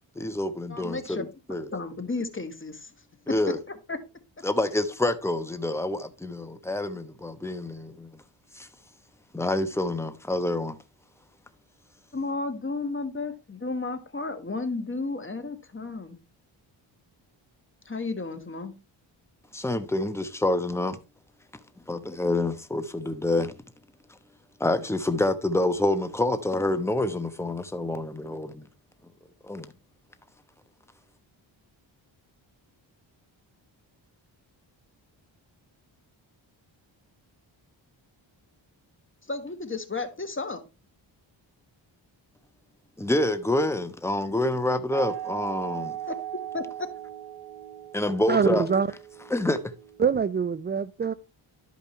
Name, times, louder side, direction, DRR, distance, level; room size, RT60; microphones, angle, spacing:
voice 1, 0.2-1.7 3.3-3.6 4.4-8.1 8.5-8.7 9.3-10.8 19.5-21.0 21.9-23.6 24.6-28.7 29.4-29.7 43.0-46.0 47.9-48.7 49.3-49.7, left 1 dB, 5° left, 1.0 m, -27 dB
voice 2, 0.7-1.2 1.7-2.9 3.7-4.0 12.1-16.2 17.8-18.7 39.3-40.6 46.1-46.2 46.5-46.9, left 3 dB, 25° left, 1.4 m, -33 dB
sound 1, 44.9-50.3, right 12 dB, 90° right, 1.7 m, -38 dB
voice 3, 48.3-48.9 50.0-51.1, right 6 dB, 25° right, 0.4 m, -24 dB
12.0 x 5.3 x 3.1 m
cardioid pair, 60°, 48 cm